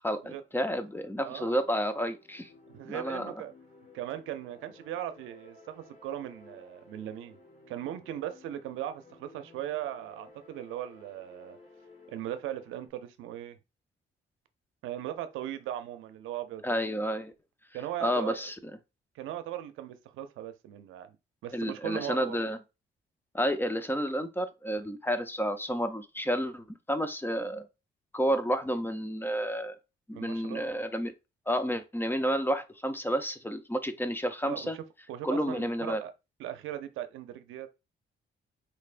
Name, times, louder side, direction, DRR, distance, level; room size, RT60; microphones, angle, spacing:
voice 1, 0.0-2.5 2.8-3.3 16.6-17.3 18.0-18.5 21.5-22.6 23.3-27.7 28.1-29.8 30.1-31.1 31.5-34.8 35.2-36.0, equal, 10° left, 0.6 m, -30 dB
voice 2, 1.2-1.6 2.7-3.5 3.9-7.4 7.7-11.6 12.1-13.6 14.8-16.7 17.7-18.5 19.1-21.2 21.4-22.4 30.1-30.8 34.4-34.8 35.1-36.1 36.4-37.7, right 12 dB, 90° right, 0.6 m, -38 dB
sound 1, 1.7-12.9, left 3 dB, 35° left, 1.7 m, -56 dB
4.4 x 3.3 x 2.5 m
cardioid pair, 90°, 20 cm